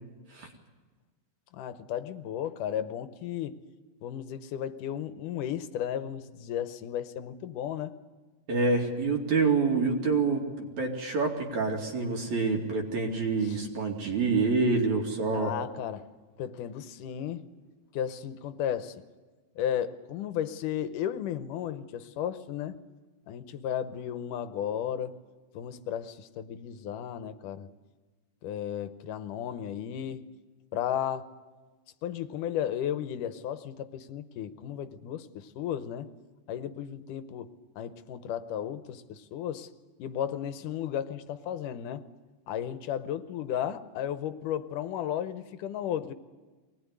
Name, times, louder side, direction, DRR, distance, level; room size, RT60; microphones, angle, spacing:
voice 1, 1.5-3.5 4.0-8.0 13.4-13.6 15.3-16.1 16.4-17.5 17.9-18.9 19.6-22.8 23.3-25.1 25.5-27.7 28.4-30.2 30.7-31.2 32.0-36.1 36.5-37.5 37.8-39.7 40.0-42.0 42.5-46.1, left 10 dB, 85° left, 11 dB, 2.5 m, -34 dB
voice 2, 8.5-15.5, right 4 dB, 65° right, 2 dB, 3.8 m, -27 dB
23.5 x 19.0 x 9.7 m, 1.3 s
omnidirectional pair, 3.6 m